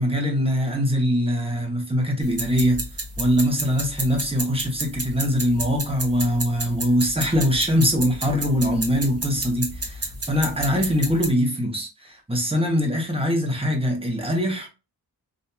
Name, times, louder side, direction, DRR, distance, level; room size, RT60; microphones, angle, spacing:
voice 1, 0.0-2.8 3.2-14.7, equal, 15° right, 1.0 m, -22 dB
sound 1, 2.2-11.3, right 2 dB, 35° right, 1.0 m, -31 dB
2.8 x 2.6 x 2.2 m
wide cardioid pair, 85°, 39 cm